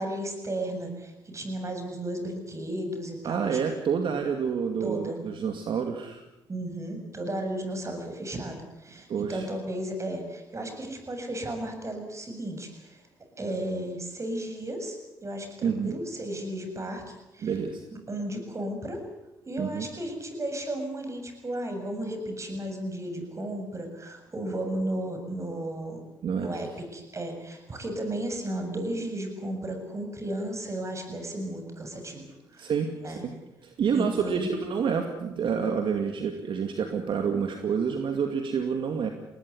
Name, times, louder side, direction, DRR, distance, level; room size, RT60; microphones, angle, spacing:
voice 1, 0.0-3.6 4.8-5.2 6.5-13.0 13.4-15.0 15.2-17.0 17.3-17.5 18.1-19.0 19.5-26.0 26.4-32.7 33.0-33.2 33.9-34.5, right 1 dB, 30° right, 5 dB, 7.7 m, -34 dB
voice 2, 3.2-6.2 9.1-9.5 15.6-16.0 17.4-17.8 19.6-19.9 26.2-26.5 32.6-33.3 33.6-39.1, right 6 dB, 60° right, 5 dB, 2.4 m, -28 dB
21.5 x 19.0 x 9.7 m, 0.95 s
supercardioid pair, 70°, 9 cm